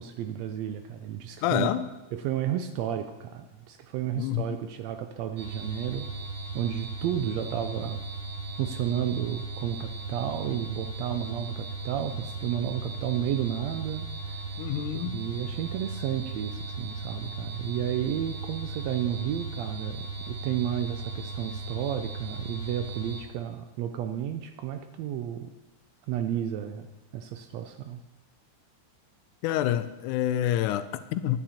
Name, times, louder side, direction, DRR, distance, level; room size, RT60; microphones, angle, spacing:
voice 1, 0.0-1.7 2.1-6.2 6.5-8.0 8.6-25.5 26.1-26.9 27.1-28.0, right 10 dB, 80° right, 8 dB, 1.5 m, -32 dB
voice 2, 1.4-1.9 4.1-4.6 14.6-15.2 29.4-31.4, left 12 dB, 85° left, 12 dB, 2.0 m, -28 dB
sound 1, 5.4-23.2, right 3 dB, 60° right, 1.8 m, -37 dB
10.5 x 10.0 x 4.3 m, 1.0 s
omnidirectional pair, 3.6 m